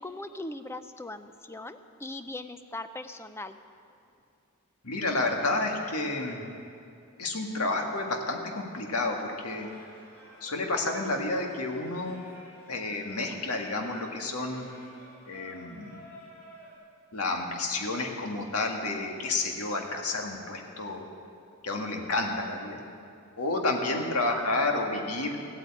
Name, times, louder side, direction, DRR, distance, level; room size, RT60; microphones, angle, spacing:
voice 1, 0.0-3.6 24.2-24.4, left 2 dB, 10° left, 9 dB, 0.5 m, -40 dB
voice 2, 4.8-6.5 7.2-9.7 10.4-12.2 12.7-14.7 15.3-16.0 17.1-21.0 21.6-22.8 23.4-25.4, left 2 dB, 75° left, 2 dB, 1.8 m, -30 dB
Singing, 9.5-16.7, equal, 45° left, 4.5 m, -52 dB
15.0 x 8.9 x 8.6 m, 2.5 s
head